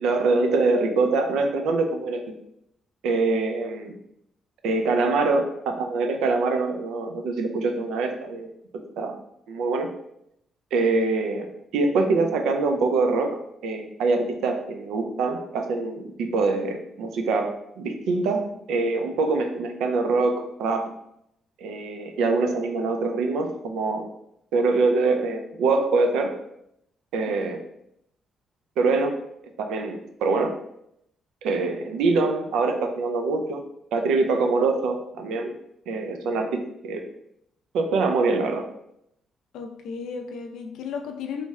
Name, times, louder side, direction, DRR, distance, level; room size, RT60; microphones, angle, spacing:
voice 1, 0.0-2.2 3.0-4.0 4.6-8.5 9.0-9.1 9.5-9.9 10.7-11.5 11.7-20.9 21.6-24.1 24.5-26.4 27.1-27.6 28.8-29.1 29.6-30.6 31.4-33.6 33.9-35.5 35.9-37.0 37.7-38.7, right 3 dB, 85° right, 5 dB, 0.4 m, -24 dB
voice 2, 39.5-41.5, left 6 dB, 80° left, 4 dB, 0.4 m, -34 dB
3.2 x 2.1 x 3.5 m, 0.77 s
cardioid pair, 90°, 0 cm